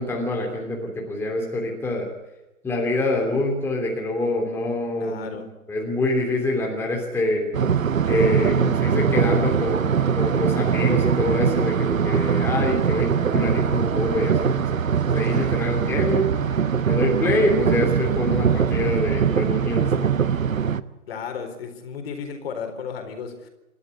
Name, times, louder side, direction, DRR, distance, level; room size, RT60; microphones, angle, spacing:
voice 1, 0.0-2.1 2.6-5.4 5.7-7.5 8.1-16.3 16.9-20.1, left 1 dB, 5° left, -1 dB, 3.0 m, -25 dB
voice 2, 5.0-5.4 21.1-23.5, left 6 dB, 40° left, 6 dB, 4.2 m, -34 dB
sound 1, 7.5-20.8, right 7 dB, 65° right, 1.1 m, -22 dB
28.5 x 13.0 x 9.8 m, 1.0 s
figure-of-eight pair, 130°, 43 cm